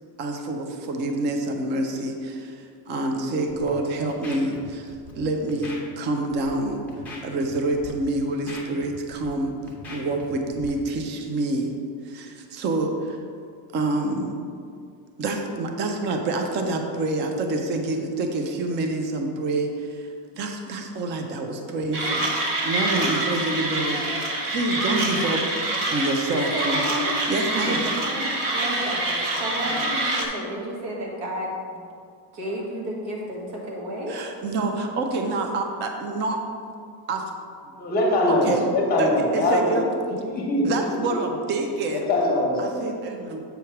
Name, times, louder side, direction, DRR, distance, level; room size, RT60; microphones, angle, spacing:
voice 1, 0.2-6.8 7.2-9.6 9.9-11.8 12.0-13.2 13.7-14.4 15.2-20.1 20.3-24.1 24.4-26.8 27.3-27.9 34.1-36.4 37.1-37.2 38.3-38.6 39.0-39.8 40.1-40.2 40.7-42.1 42.6-43.4, right 2 dB, 25° right, 4 dB, 0.3 m, -27 dB
Scratching (performance technique), 3.5-3.7 4.1-4.6 4.9-5.1 5.5-5.8 6.3-6.5 6.9-7.5 7.7-7.9 8.3-9.3 9.7-10.3 10.5-10.7, left 3 dB, 5° left, 0.8 m, -40 dB
Mechanisms, 21.9-30.3, right 2 dB, 45° right, 1.0 m, -26 dB
voice 2, 26.3-27.1 27.7-31.8 32.3-34.2 40.2-40.3, equal, 70° right, -2 dB, 1.7 m, -32 dB
voice 3, 37.8-39.8 40.3-40.8 41.9-42.6, left 1 dB, 20° left, -1 dB, 1.1 m, -22 dB
7.9 x 3.2 x 5.7 m, 2.3 s
cardioid pair, 175°, 45 cm